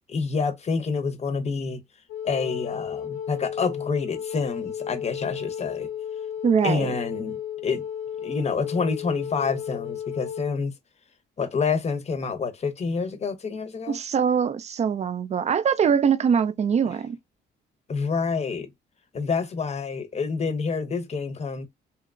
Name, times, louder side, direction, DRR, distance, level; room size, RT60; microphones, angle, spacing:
voice 1, 0.1-1.8 2.2-5.9 6.6-7.9 8.2-10.7 11.4-14.0 16.9-17.0 17.9-18.7 19.1-21.7, left 5 dB, 35° left, 0.7 m, -28 dB
Wind instrument woodwind instrument, 2.1-10.5, left 9 dB, 85° left, 0.7 m, -34 dB
voice 2, 6.4-6.9 13.9-17.2, right 7 dB, 35° right, 0.4 m, -23 dB
2.8 x 2.1 x 2.4 m
cardioid pair, 90°, 20 cm